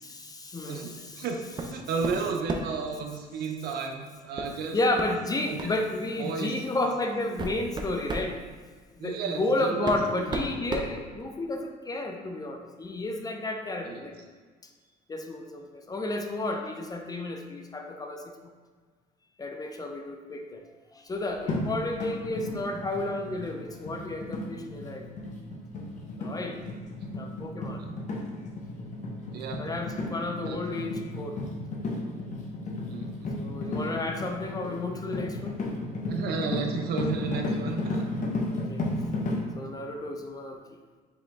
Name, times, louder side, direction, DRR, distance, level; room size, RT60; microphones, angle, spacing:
voice 1, 0.0-1.2 4.7-8.4 8.9-14.1 15.1-18.3 19.4-20.6 20.9-25.1 26.2-26.6 27.2-27.8 29.6-31.4 33.4-35.6 38.5-38.9 39.5-40.6, left 2 dB, 20° left, 4 dB, 0.4 m, -32 dB
voice 2, 1.2-4.8 5.5-5.6 6.2-6.5 9.0-10.3 13.8-14.1 29.3-29.6 30.4-30.6 32.9-33.3 36.1-38.2, right 5 dB, 70° right, 3 dB, 0.7 m, -33 dB
sound 1, 1.6-1.8 2.0-2.8 4.4-4.5 5.0-5.1 5.6-5.8 6.6-6.7 7.2-8.3 9.4-9.5 9.8-11.6, right 2 dB, 25° right, 0.5 m, -33 dB
sound 2, 21.5-39.4, left 2 dB, 45° left, 0.9 m, -33 dB
4.9 x 3.0 x 3.5 m, 1.4 s
cardioid pair, 110°, 17 cm